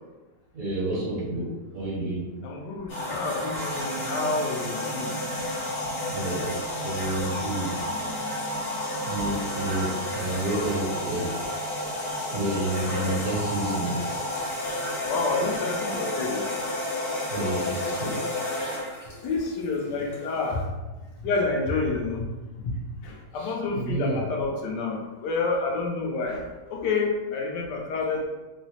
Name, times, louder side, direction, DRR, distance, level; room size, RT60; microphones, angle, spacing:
voice 1, 0.5-2.3 6.1-8.1 9.0-11.4 12.3-14.0 17.3-18.2 18.6-18.8 23.3-24.2, right 1 dB, 55° right, -9 dB, 1.8 m, -30 dB
voice 2, 2.4-5.1 7.9-8.3 9.7-10.0 15.1-16.5 19.2-20.6 21.2-22.3 22.6-22.7 23.0-26.4 26.7-28.3, left 3 dB, 85° left, 0 dB, 1.2 m, -29 dB
sound 1, 2.9-20.6, left 1 dB, 65° left, 1.5 m, -31 dB
3.7 x 2.0 x 2.7 m, 1.2 s
omnidirectional pair, 1.8 m